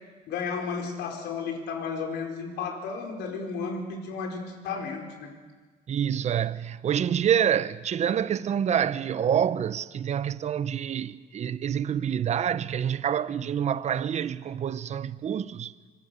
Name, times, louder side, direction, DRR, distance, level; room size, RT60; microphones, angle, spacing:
voice 1, 0.3-5.3, left 5 dB, 80° left, 4.7 m, -33 dB
voice 2, 5.9-15.7, right 9 dB, 40° right, 0.8 m, -27 dB
25.5 x 21.5 x 6.9 m
cardioid pair, 110°, 17 cm